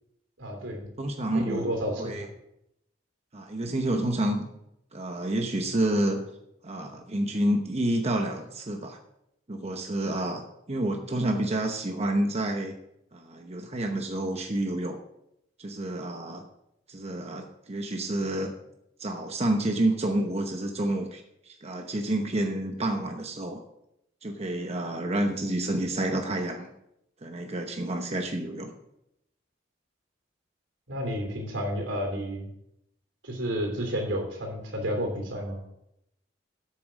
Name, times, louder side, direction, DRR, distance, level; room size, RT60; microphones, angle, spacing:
voice 1, 0.4-0.8 1.3-2.2 30.9-32.5 33.2-35.7, equal, 85° right, 2 dB, 3.2 m, -31 dB
voice 2, 1.0-1.7 2.0-2.3 3.3-4.4 4.9-6.2 6.6-9.0 9.5-10.4 10.7-12.7 13.1-15.0 15.6-16.4 16.9-18.5 19.0-23.6 24.2-26.7 27.2-28.7, right 1 dB, 35° right, 3 dB, 0.9 m, -29 dB
8.5 x 7.5 x 6.3 m, 0.81 s
head